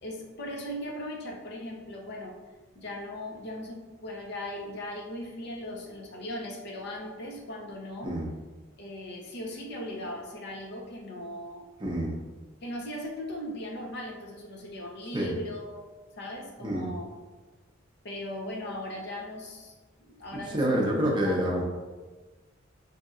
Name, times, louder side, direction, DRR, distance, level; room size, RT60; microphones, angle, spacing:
voice 1, 0.0-2.4 2.7-8.2 8.8-11.6 12.6-15.9 16.2-17.1 18.0-19.8 20.1-21.6, left 1 dB, 55° left, 0 dB, 0.7 m, -38 dB
voice 2, 11.8-12.2 15.1-15.3 16.6-16.9 20.3-21.6, equal, 25° right, -2 dB, 0.6 m, -27 dB
5.1 x 2.7 x 2.4 m, 1.3 s
head